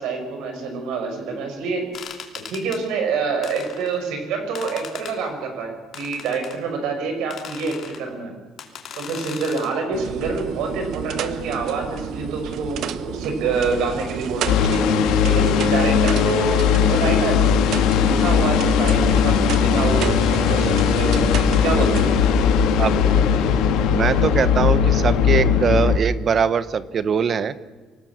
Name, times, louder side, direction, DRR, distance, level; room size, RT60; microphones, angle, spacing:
voice 1, 0.0-1.9 2.5-8.3 8.9-14.6 15.2-17.4 17.9-21.3 21.6-22.1, right 4 dB, 70° right, 5 dB, 6.2 m, -26 dB
sound 1, 1.9-2.8 3.4-4.0 4.6-5.2 5.9-6.6 7.3-8.0 8.6-9.7, left 8 dB, 40° left, 2.8 m, -38 dB
sound 2, 9.9-22.1, right 9 dB, 55° right, 1.1 m, -31 dB
sound 3, 14.5-26.0, left 7 dB, 80° left, 2.5 m, -18 dB
voice 2, 23.9-27.5, right 7 dB, 30° right, 15 dB, 0.9 m, -21 dB
25.5 x 17.5 x 7.4 m, 1.3 s
cardioid pair, 180°, 0 cm